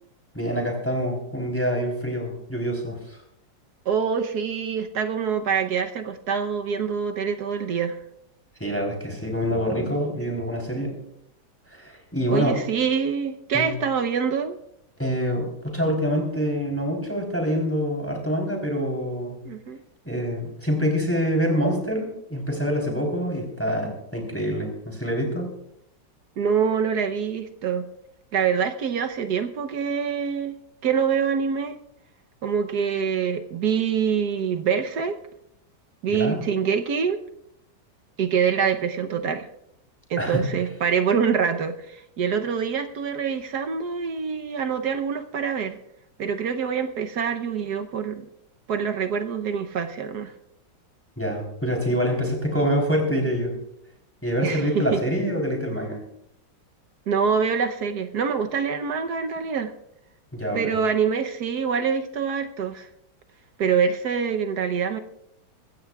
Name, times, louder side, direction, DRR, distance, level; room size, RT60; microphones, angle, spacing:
voice 1, 0.3-3.2 8.6-10.9 11.7-12.6 13.5-13.7 15.0-19.4 20.0-25.5 36.1-36.4 40.2-40.5 51.2-53.5 54.2-56.0 60.3-60.7, equal, 5° left, 1 dB, 3.5 m, -26 dB
voice 2, 3.9-8.0 12.3-14.5 19.4-19.8 26.4-27.9 28.3-30.5 30.8-31.8 32.4-35.2 36.0-37.2 38.2-39.5 40.1-45.8 46.2-48.3 48.7-50.3 54.4-55.0 57.1-59.7 60.5-62.9 63.6-65.0, right 6 dB, 65° right, 7 dB, 1.3 m, -25 dB
23.0 x 15.5 x 2.3 m, 0.76 s
omnidirectional pair, 2.0 m